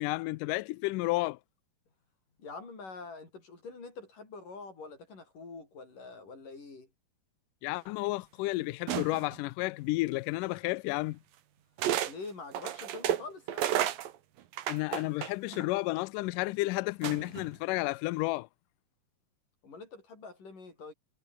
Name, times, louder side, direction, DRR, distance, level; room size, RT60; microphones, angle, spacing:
voice 1, 0.0-1.4 7.6-11.2 14.7-18.5, left 21 dB, 80° left, 1.9 m, -31 dB
voice 2, 2.4-6.9 12.1-13.7 19.6-20.9, left 4 dB, 60° left, 9.0 m, -45 dB
sound 1, 8.9-9.4 10.5-10.6 11.8-12.1 12.5-15.7 17.0-17.5, right 11 dB, 70° right, 3.3 m, -32 dB
omnidirectional pair, 4.3 m